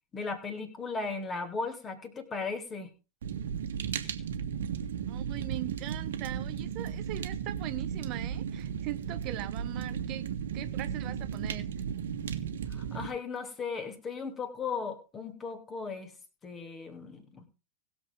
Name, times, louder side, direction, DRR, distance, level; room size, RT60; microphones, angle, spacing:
voice 1, 0.1-2.9 12.7-16.1 16.4-17.4, left 4 dB, 20° left, 2.9 m, -36 dB
Fire, 3.2-13.1, right 8 dB, 60° right, 1.5 m, -35 dB
voice 2, 5.1-11.7, right 16 dB, 40° right, 0.9 m, -41 dB
19.5 x 7.3 x 3.7 m
figure-of-eight pair, 90°, 0 cm